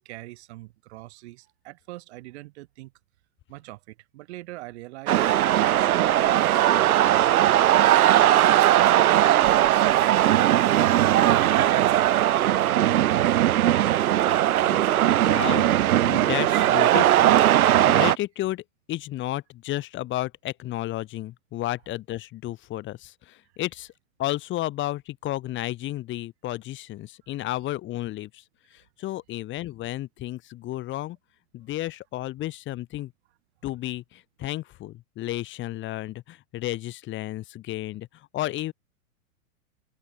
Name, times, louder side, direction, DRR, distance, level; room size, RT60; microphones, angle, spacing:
voice 1, 0.0-2.9 3.5-7.9 8.6-10.5 10.9-14.0, right 19 dB, 50° right, 4.7 m, -41 dB
sound 1, 5.1-18.2, right 13 dB, 75° right, 1.0 m, -19 dB
voice 2, 15.2-15.7 16.0-17.3 17.9-18.6 18.9-23.1 23.6-23.9 24.2-28.3 29.0-31.2 31.5-33.1 33.6-38.1 38.3-38.7, left 15 dB, 25° left, 5.5 m, -32 dB
hypercardioid pair, 150°, 43 cm